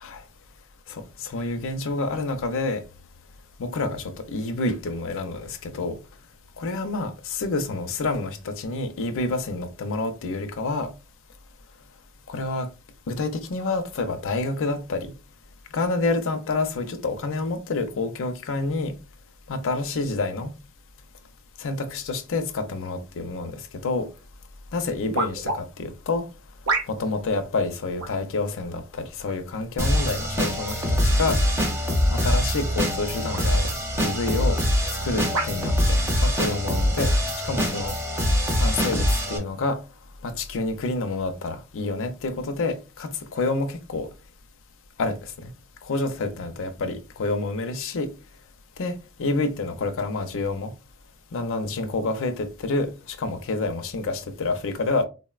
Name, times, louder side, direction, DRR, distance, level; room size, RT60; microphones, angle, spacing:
voice 1, 0.9-2.8 3.6-6.0 6.6-10.9 12.3-12.7 13.1-15.1 15.7-18.9 19.5-20.5 21.6-24.1 24.7-26.3 26.9-31.4 32.1-33.6 34.0-34.6 35.0-37.1 37.4-37.9 38.5-39.8 40.2-44.1 45.0-45.5 45.8-48.1 48.8-50.7 51.3-55.0, left 3 dB, 65° left, 0.5 m, -28 dB
sound 1, 24.2-24.3 25.1-25.6 26.6-27.2 28.0-28.3 29.3-29.7 30.5-30.6 32.5-32.7 33.3-33.5 34.3-34.4 35.3-35.6 36.4-36.6, right 3 dB, 80° right, 0.6 m, -29 dB
sound 2, 29.8-39.4, equal, 10° right, 0.8 m, -23 dB
3.7 x 2.1 x 2.3 m
head